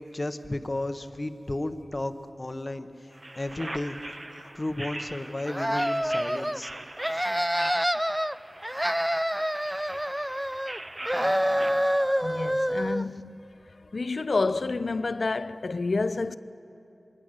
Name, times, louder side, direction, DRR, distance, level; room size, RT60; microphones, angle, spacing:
voice 1, 0.0-2.1 2.4-4.0 4.5-6.7, left 1 dB, 35° left, 0.9 m, -33 dB
sound 1, 3.1-11.7, right 1 dB, 35° right, 1.0 m, -42 dB
sound 2, 5.5-6.6 7.0-8.3 8.6-10.8 11.1-13.1, equal, 5° right, 0.4 m, -27 dB
voice 2, 12.2-13.5 13.9-16.4, left 3 dB, 60° left, 0.5 m, -29 dB
22.0 x 18.5 x 6.5 m
wide cardioid pair, 70°, 0 cm